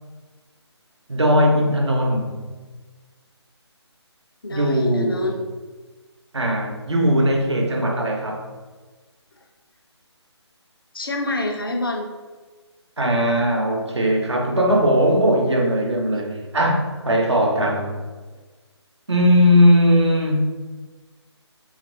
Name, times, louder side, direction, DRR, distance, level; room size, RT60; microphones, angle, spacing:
voice 1, 1.1-2.4 4.5-5.3 6.3-8.5 13.0-18.0 19.1-20.4, equal, 75° right, 0.7 m, -19 dB
voice 2, 4.4-5.5 10.9-12.1, left 2 dB, 50° left, 0.5 m, -27 dB
3.2 x 2.8 x 2.6 m
figure-of-eight pair, 150°, 15 cm